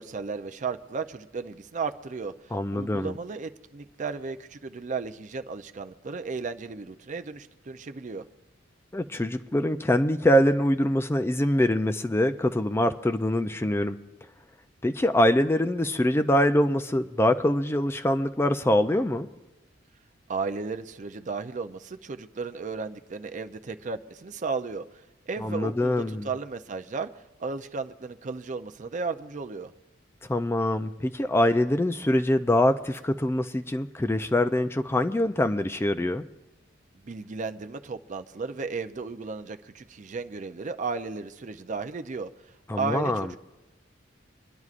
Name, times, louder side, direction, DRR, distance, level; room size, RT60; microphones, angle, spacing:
voice 1, 0.0-8.3 20.3-24.8 25.3-29.7 37.0-42.3 42.7-43.4, right 4 dB, 40° right, 8 dB, 0.5 m, -34 dB
voice 2, 2.5-3.1 8.9-14.0 14.8-19.3 25.4-26.3 30.2-36.2 42.7-43.3, left 1 dB, 15° left, 8 dB, 0.4 m, -24 dB
26.5 x 11.0 x 2.5 m, 1.0 s
head